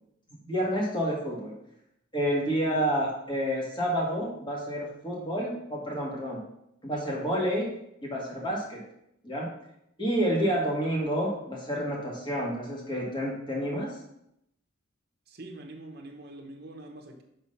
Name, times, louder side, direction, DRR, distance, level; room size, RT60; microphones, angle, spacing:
voice 1, 0.4-1.5 2.1-6.4 6.8-7.7 8.0-8.8 9.2-9.5 10.0-14.0, equal, 25° left, -3 dB, 1.9 m, -29 dB
voice 2, 15.3-17.2, right 2 dB, 50° right, 1 dB, 1.0 m, -44 dB
5.4 x 4.5 x 5.6 m, 0.78 s
head